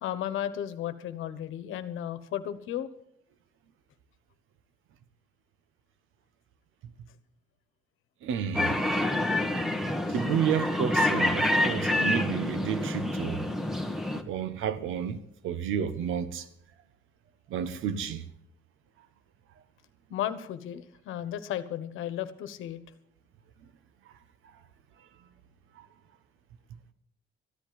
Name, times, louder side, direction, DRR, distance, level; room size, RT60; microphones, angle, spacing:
voice 1, 0.0-2.9 20.1-22.8, left 11 dB, 90° left, 1.2 m, -34 dB
voice 2, 8.2-8.8 10.1-13.5 14.1-16.5 17.5-18.2 25.8-25.9, right 8 dB, 90° right, 1.2 m, -31 dB
sound 1, 8.5-14.2, left 1 dB, ahead, 1.6 m, -27 dB
14.5 x 10.5 x 7.7 m
cardioid pair, 90°, 20 cm